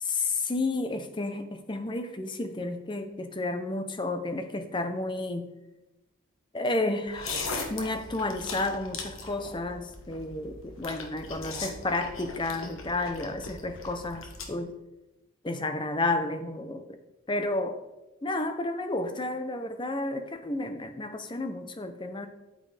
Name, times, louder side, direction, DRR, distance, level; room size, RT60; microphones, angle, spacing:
voice 1, 0.1-5.5 6.5-7.3 7.7-14.7 15.4-16.8 17.3-17.8 18.2-22.3, left 2 dB, 25° left, 8 dB, 0.7 m, -31 dB
sound 1, 7.1-14.5, left 3 dB, 70° left, 1.3 m, -39 dB
8.8 x 8.6 x 3.4 m, 1.0 s
head